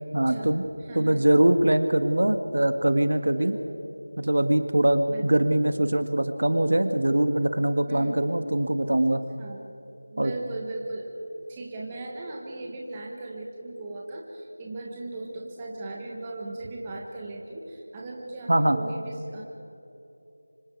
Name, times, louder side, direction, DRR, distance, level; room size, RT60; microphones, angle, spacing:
voice 1, 0.1-0.6 1.0-3.5 4.2-9.2 10.2-10.3 18.5-18.8, right 1 dB, 70° right, 9 dB, 1.7 m, -22 dB
voice 2, 0.8-1.2 3.4-3.8 5.1-5.3 7.9-8.2 9.4-9.6 10.1-11.1 11.5-19.4, right 2 dB, 10° right, -1 dB, 1.5 m, -37 dB
25.5 x 25.0 x 4.7 m, 2.9 s
figure-of-eight pair, 175°, 0 cm